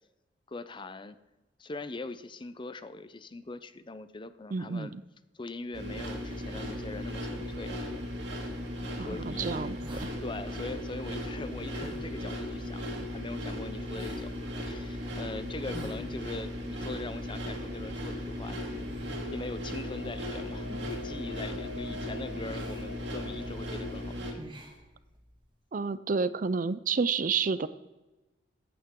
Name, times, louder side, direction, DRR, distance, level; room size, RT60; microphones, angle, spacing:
voice 1, 0.5-1.2 1.6-4.9 5.3-7.8 9.0-24.4, left 2 dB, 30° left, 13 dB, 0.6 m, -42 dB
voice 2, 4.5-4.9 9.0-10.1 25.7-27.7, right 5 dB, 50° right, 15 dB, 0.5 m, -30 dB
sound 1, 5.7-24.3, left 1 dB, 90° right, 2.7 m, -37 dB
sound 2, 9.8-25.5, right 1 dB, 30° right, 1.7 m, -53 dB
sound 3, 19.0-24.1, left 4 dB, 65° left, 0.7 m, -46 dB
15.0 x 9.4 x 3.7 m, 1.1 s
head